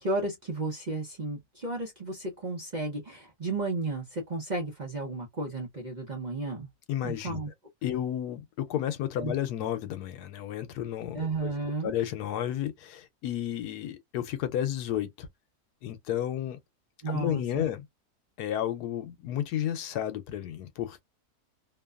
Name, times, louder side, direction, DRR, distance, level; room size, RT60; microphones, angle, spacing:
voice 1, 0.0-6.7 7.0-7.5 9.2-9.3 11.1-11.9 17.0-17.7, right 2 dB, 40° right, 0.7 m, -33 dB
voice 2, 6.9-7.5 7.8-11.5 11.8-15.3 15.8-16.6 17.1-17.9 18.4-21.0, left 11 dB, 85° left, 1.1 m, -32 dB
2.9 x 2.2 x 2.3 m
omnidirectional pair, 1.6 m